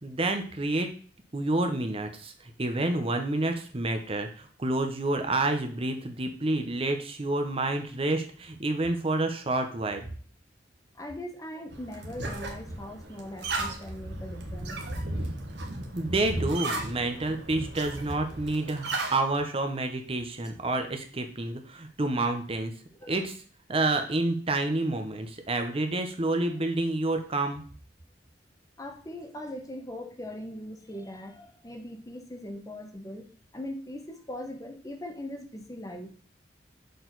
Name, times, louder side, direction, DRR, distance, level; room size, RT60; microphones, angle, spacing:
voice 1, 0.0-0.9 1.3-10.1 15.9-22.7 23.1-23.3 23.7-27.6, right 2 dB, 30° right, 6 dB, 0.7 m, -29 dB
voice 2, 10.9-14.8 23.0-23.1 28.8-36.2, left 1 dB, 20° left, 5 dB, 0.8 m, -40 dB
sound 1, 11.7-19.2, right 2 dB, 70° right, 1.3 m, -35 dB
6.5 x 4.5 x 3.9 m, 0.42 s
head